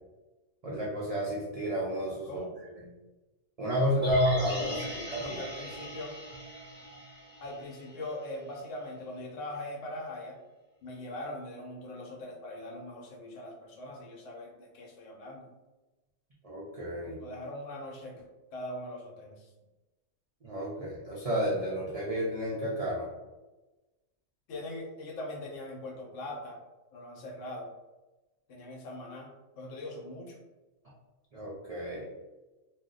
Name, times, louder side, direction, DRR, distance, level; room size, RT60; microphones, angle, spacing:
voice 1, 0.6-2.4 3.6-4.8 5.1-5.4 16.4-17.2 20.4-23.1 31.3-32.1, equal, 65° right, -5 dB, 0.3 m, -31 dB
sound 1, 4.0-8.2 8.5-8.6, right 1 dB, 10° right, 0.8 m, -40 dB
voice 2, 4.6-6.2 7.4-10.4 10.8-15.5 17.2-18.2 18.5-19.5 24.5-26.6 26.9-27.7 28.5-29.3 29.6-30.4, left 1 dB, 70° left, 0 dB, 1.0 m, -41 dB
2.6 x 2.1 x 3.7 m, 1.1 s
omnidirectional pair, 1.4 m